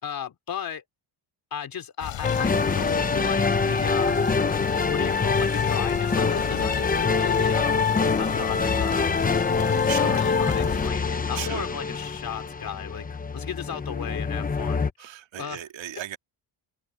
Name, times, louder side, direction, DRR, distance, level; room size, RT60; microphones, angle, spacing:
voice 1, 0.0-0.8 1.5-4.2 4.9-7.9 8.2-9.2 9.9-15.1 15.4-15.6, left 8 dB, 45° left, 3.2 m, -35 dB
sound 1, 2.0-10.9, left 11 dB, 65° left, 6.9 m, -35 dB
sound 2, 2.2-14.9, left 4 dB, 20° left, 0.9 m, -24 dB
voice 2, 9.8-10.2 11.4-11.7 15.0-16.2, right 11 dB, 70° right, 2.1 m, -36 dB
cardioid pair, 160°, 47 cm